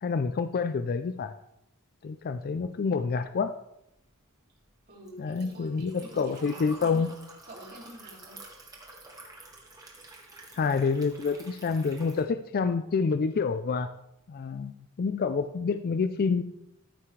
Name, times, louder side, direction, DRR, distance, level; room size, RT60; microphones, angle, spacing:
voice 1, 0.0-1.3 2.0-3.5 5.2-7.1 10.5-13.9 14.3-16.4, left 5 dB, 45° left, 10 dB, 0.4 m, -28 dB
Liquid, 4.0-12.2, right 2 dB, 15° right, 1.7 m, -49 dB
voice 2, 4.9-7.1 7.5-8.4, right 1 dB, 45° right, -4 dB, 3.4 m, -47 dB
14.0 x 5.8 x 3.2 m, 0.81 s
head